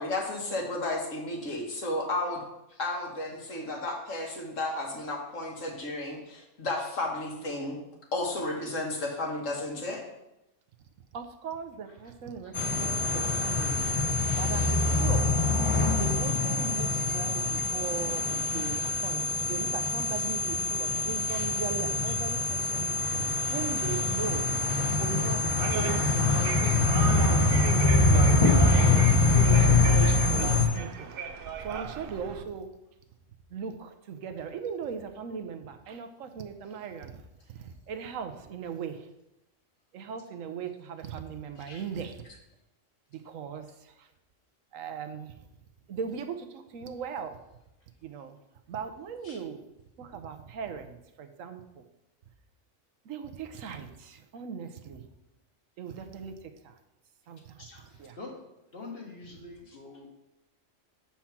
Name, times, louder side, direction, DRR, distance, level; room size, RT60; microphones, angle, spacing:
voice 1, 0.0-2.4 2.8-7.8 8.1-10.0 26.3-26.4 41.7-41.8 49.2-49.4 57.6-57.8, left 2 dB, 70° left, 0 dB, 1.7 m, -33 dB
voice 2, 11.1-13.9 14.2-15.3 15.9-24.6 24.9-28.4 28.9-31.1 31.6-32.7 33.5-37.2 37.5-39.0 39.9-42.2 43.1-43.7 44.0-44.1 44.7-45.3 45.9-47.4 48.0-48.4 48.7-49.6 50.0-51.6 53.1-55.0 55.8-56.3 56.6-56.7 57.3-57.7 58.0-58.2, right 6 dB, 80° right, 7 dB, 1.1 m, -38 dB
sound 1, 12.5-30.7, left 3 dB, 30° left, 0.8 m, -25 dB
sound 2, 23.0-32.4, right 6 dB, 60° right, 0.6 m, -38 dB
voice 3, 57.9-58.3 58.7-60.1, left 3 dB, 50° left, -1 dB, 1.7 m, -44 dB
7.2 x 4.5 x 5.8 m, 0.90 s
omnidirectional pair, 1.4 m